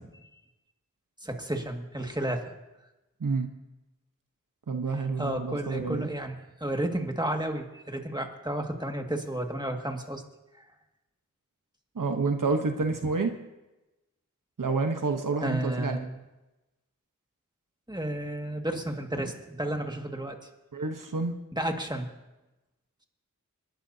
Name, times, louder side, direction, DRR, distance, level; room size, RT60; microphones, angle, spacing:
voice 1, 1.2-2.5 4.9-10.2 10.6-10.7 15.4-16.2 17.9-20.4 21.5-22.1, right 1 dB, 15° right, 2 dB, 2.0 m, -32 dB
voice 2, 4.7-6.1 11.9-13.3 14.6-16.0 20.7-21.4, right 4 dB, 90° right, 5 dB, 1.1 m, -28 dB
29.5 x 11.5 x 2.8 m, 1.0 s
wide cardioid pair, 45°, 31 cm